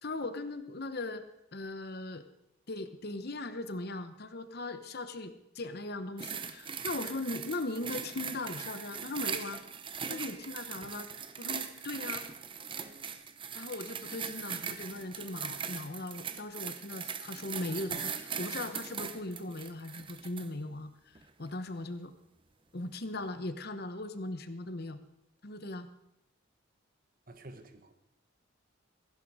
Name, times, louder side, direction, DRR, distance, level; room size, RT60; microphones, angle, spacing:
voice 1, 0.0-2.2 2.7-9.6 10.1-11.1 11.4-12.3 13.5-22.1 22.7-25.0 25.4-25.9, left 2 dB, 50° left, 10 dB, 1.0 m, -39 dB
sound 1, 6.2-20.5 21.2-21.3, right 7 dB, 25° right, 0.7 m, -40 dB
voice 2, 27.3-27.9, right 1 dB, 45° right, 8 dB, 1.4 m, -49 dB
16.5 x 15.5 x 4.9 m, 0.82 s
head